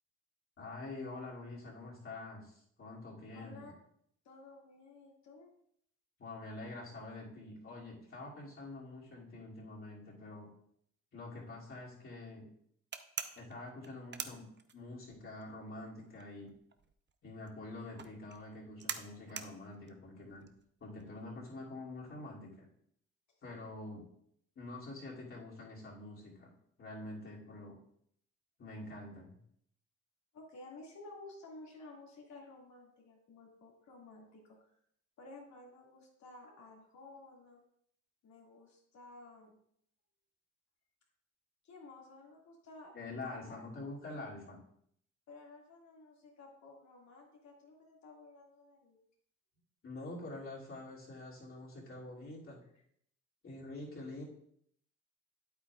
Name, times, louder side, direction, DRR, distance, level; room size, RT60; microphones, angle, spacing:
voice 1, 0.6-3.7 6.2-10.5 11.1-12.5 13.4-16.5 17.2-20.4 20.8-22.7 23.4-24.1 24.6-26.5 26.8-27.8 28.6-29.4 42.9-44.6 49.8-52.6 53.4-54.2, left 2 dB, 45° left, -4 dB, 2.7 m, -46 dB
voice 2, 3.3-3.7 4.2-5.5 30.3-34.8 35.2-37.6 38.2-39.6 41.6-42.9 43.2-43.6 45.3-49.0 52.7-52.8, left 2 dB, 65° left, -1 dB, 2.2 m, -54 dB
sound 1, 12.9-15.1 15.4-21.2, right 7 dB, 35° right, 0.6 m, -44 dB
8.8 x 8.3 x 2.4 m, 0.69 s
cardioid pair, 90°, 30 cm